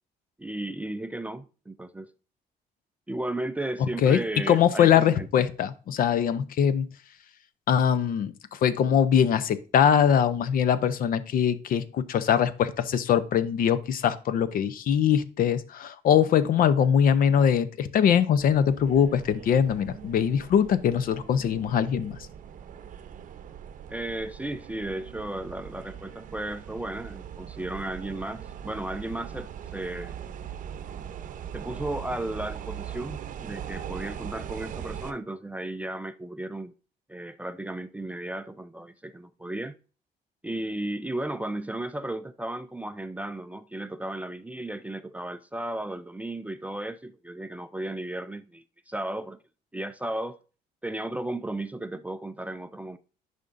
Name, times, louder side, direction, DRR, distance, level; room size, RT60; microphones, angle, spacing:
voice 1, 0.4-2.1 3.1-5.4 23.9-30.2 31.5-36.7 37.1-39.7 40.4-49.4 49.7-50.4 50.8-53.0, right 1 dB, 10° right, 0.4 m, -34 dB
voice 2, 4.5-6.9 7.7-22.2, left 8 dB, 55° left, 0.6 m, -22 dB
sound 1, 18.4-35.1, right 9 dB, 50° right, 0.7 m, -41 dB
10.5 x 5.1 x 2.6 m
cardioid pair, 110°, 17 cm